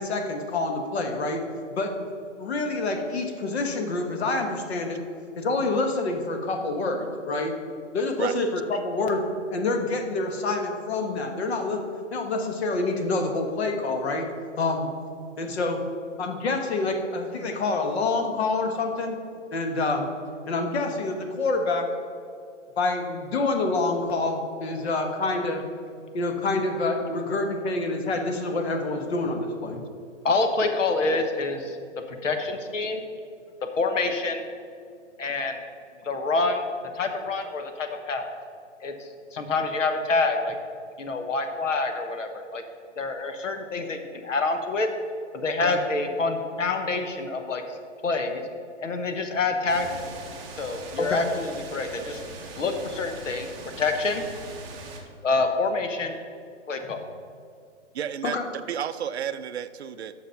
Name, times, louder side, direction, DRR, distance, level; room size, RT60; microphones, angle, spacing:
voice 1, 0.0-1.4 1.7-1.9 2.4-5.0 5.4-7.5 7.9-11.8 12.1-14.3 14.6-14.9 15.4-15.8 16.2-19.2 19.5-20.1 20.5-21.9 22.8-25.6 26.1-29.8 45.6-45.8 51.0-51.2 58.2-58.4, left 3 dB, 55° left, 4 dB, 1.5 m, -27 dB
voice 2, 30.2-31.8 32.1-33.0 33.8-34.4 35.2-35.6 36.0-36.7 36.9-38.3 38.8-40.5 41.0-42.6 43.0-44.9 45.3-47.6 48.0-48.4 48.8-50.1 50.5-52.2 52.6-53.5 53.8-54.2 55.2-56.1 56.7-57.0, left 3 dB, 80° left, 6 dB, 1.3 m, -27 dB
sound 1, 49.7-55.0, right 3 dB, 10° right, 0.7 m, -41 dB
voice 3, 57.9-60.1, right 9 dB, 60° right, 12 dB, 0.5 m, -32 dB
8.0 x 6.3 x 5.7 m, 2.3 s
hypercardioid pair, 150°, 37 cm